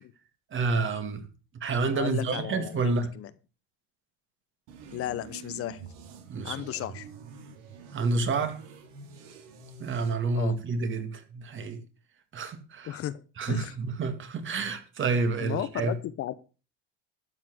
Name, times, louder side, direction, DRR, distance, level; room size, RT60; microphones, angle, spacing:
voice 1, 0.5-1.2 1.6-3.1 6.3-6.5 7.9-8.6 9.8-11.8 12.3-13.0 13.4-15.9, right 3 dB, 35° right, 2.2 m, -29 dB
voice 2, 1.9-3.3 4.9-5.8 6.4-7.1 10.3-10.6 12.8-13.2 13.5-13.7 15.4-16.3, left 13 dB, 45° left, 0.8 m, -34 dB
sound 1, 4.7-10.1, right 5 dB, 70° right, 2.8 m, -47 dB
12.0 x 5.9 x 6.2 m
supercardioid pair, 115°, 33 cm